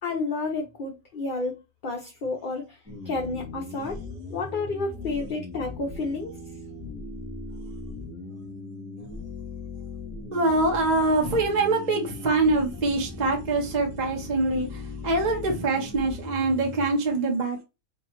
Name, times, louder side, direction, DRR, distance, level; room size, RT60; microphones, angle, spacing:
voice 1, 0.0-2.8 3.0-4.0 4.3-6.3, left 3 dB, 45° left, 0.7 m, -30 dB
sound 1, 2.9-16.9, left 3 dB, 5° right, 1.4 m, -39 dB
voice 2, 10.3-17.6, right 2 dB, 35° right, 0.9 m, -24 dB
4.9 x 2.9 x 3.0 m
omnidirectional pair, 1.5 m